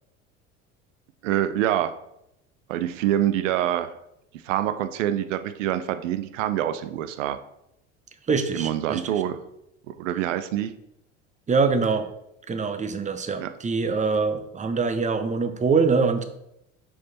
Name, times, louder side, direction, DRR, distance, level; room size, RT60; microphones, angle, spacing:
voice 1, 1.2-1.9 2.7-3.9 4.4-7.4 8.5-9.4 9.9-10.7 13.4-13.5, right 12 dB, 80° right, 11 dB, 0.6 m, -25 dB
voice 2, 8.3-9.1 11.5-12.1 12.5-16.2, right 4 dB, 20° right, 9 dB, 0.8 m, -24 dB
6.1 x 4.7 x 4.2 m, 0.81 s
hypercardioid pair, 75°, 37 cm